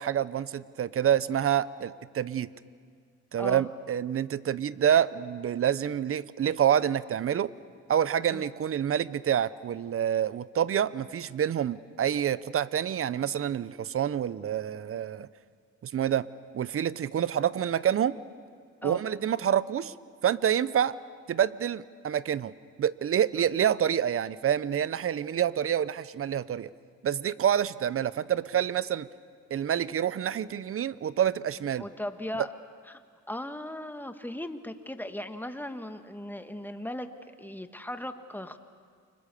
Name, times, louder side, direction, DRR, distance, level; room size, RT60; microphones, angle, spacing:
voice 1, 0.0-2.5 3.3-7.5 7.9-15.3 15.8-16.3 16.5-18.2 18.8-19.9 20.2-21.0 21.3-22.5 22.8-26.7 27.0-29.1 29.5-31.9, right 9 dB, 45° right, 18 dB, 0.8 m, -27 dB
voice 2, 3.4-3.7 8.3-8.4 18.8-19.0 23.4-23.5 31.8-32.5 32.9-33.0 33.3-38.6, left 1 dB, 5° left, 8 dB, 1.6 m, -37 dB
29.5 x 25.0 x 7.0 m, 2.1 s
cardioid pair, 90°, 30 cm